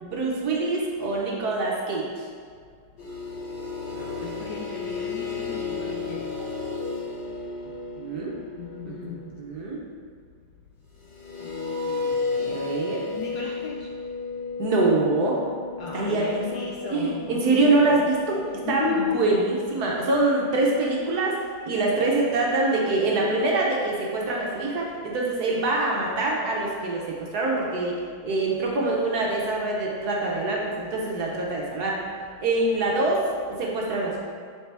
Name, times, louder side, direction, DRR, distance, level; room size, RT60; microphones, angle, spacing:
voice 1, 0.0-2.0 8.0-8.3 8.8-9.8 12.3-13.1 14.6-15.4 15.9-21.4 21.7-32.0 32.4-33.2 33.5-34.2, right 2 dB, 60° right, -2 dB, 1.2 m, -25 dB
sound 1, 3.0-9.6 11.0-21.3, left 4 dB, 45° left, 0.7 m, -34 dB
voice 2, 3.9-6.4 8.5-9.2 11.4-12.2 13.1-13.9 15.8-18.1 18.6-19.2, left 6 dB, 70° left, -2 dB, 0.9 m, -35 dB
7.2 x 4.5 x 3.3 m, 2.1 s
omnidirectional pair, 2.2 m